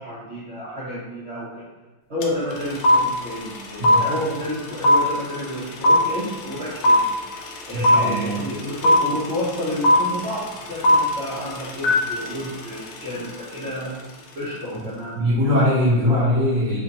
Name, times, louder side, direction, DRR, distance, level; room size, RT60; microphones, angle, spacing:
voice 1, 0.0-1.7 2.1-7.1 7.7-14.0 14.3-15.5 16.0-16.2, left 1 dB, 90° right, -9 dB, 0.5 m, -30 dB
sound 1, 2.2-2.3 2.5-13.7, left 1 dB, 85° left, 1.4 m, -19 dB
voice 2, 7.7-8.4 14.7-14.9 15.1-16.8, left 1 dB, 65° right, -9 dB, 1.5 m, -21 dB
4.2 x 2.7 x 2.7 m, 1.2 s
omnidirectional pair, 2.2 m